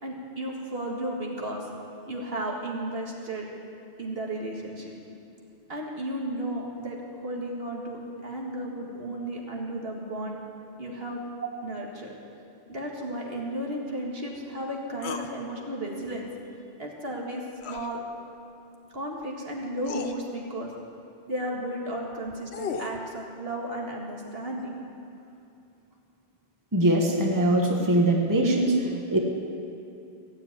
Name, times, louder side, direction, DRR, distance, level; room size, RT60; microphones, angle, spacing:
voice 1, 0.0-1.7 2.1-3.5 4.0-4.9 5.7-10.4 10.8-11.2 11.6-12.1 12.7-16.3 16.8-18.0 18.9-20.7 21.2-24.8, right 1 dB, 65° right, -1 dB, 2.2 m, -34 dB
sound 1, 15.0-15.3 17.6-17.9 19.2-19.3 19.8-20.1 22.1-23.0, left 5 dB, 75° left, 1.1 m, -34 dB
voice 2, 26.7-29.2, right 1 dB, 20° right, 0 dB, 1.4 m, -22 dB
16.0 x 7.4 x 9.5 m, 2.7 s
omnidirectional pair, 1.1 m